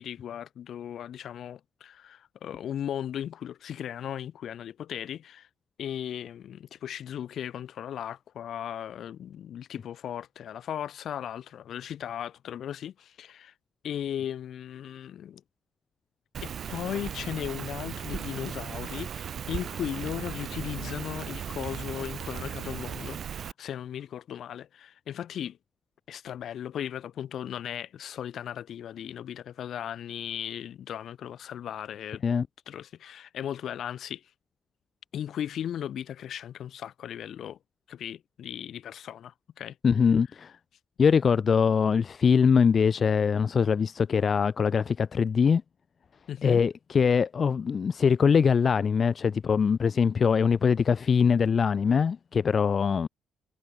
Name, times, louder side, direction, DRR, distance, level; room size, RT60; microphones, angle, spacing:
voice 1, 0.0-5.5 5.8-13.5 13.8-15.4 16.4-25.6 26.1-32.2 32.7-34.2 35.1-37.6 37.9-39.8 46.3-46.6, left 10 dB, 65° left, 3.6 m, -37 dB
Rain, 16.3-23.5, right 8 dB, 55° right, 2.5 m, -37 dB
voice 2, 39.8-40.5 41.0-45.6 46.4-53.1, left 6 dB, 45° left, 0.8 m, -23 dB
cardioid pair, 90°, 0 cm